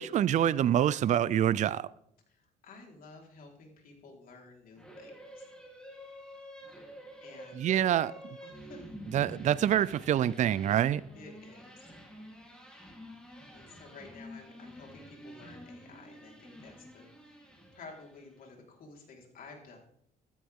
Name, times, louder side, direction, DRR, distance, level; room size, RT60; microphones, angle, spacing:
voice 1, 0.0-1.9 7.6-8.1 9.1-11.0, right 10 dB, 45° right, 0.5 m, -26 dB
voice 2, 2.3-5.5 7.2-8.1 8.4-8.8 11.1-11.9 13.5-17.4 17.7-19.8, left 4 dB, 55° left, 4.4 m, -52 dB
sound 1, 4.8-18.4, equal, 5° left, 3.7 m, -49 dB
15.5 x 12.5 x 3.7 m
cardioid pair, 110°, 17 cm